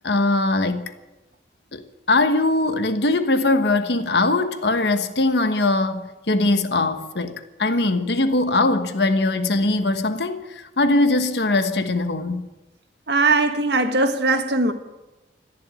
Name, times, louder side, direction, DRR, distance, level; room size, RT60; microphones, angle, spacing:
voice 1, 0.0-0.9 1.7-12.5, left 2 dB, 75° left, 1.3 m, -21 dB
voice 2, 13.1-14.7, right 3 dB, 75° right, 1.6 m, -20 dB
14.5 x 10.5 x 9.1 m
head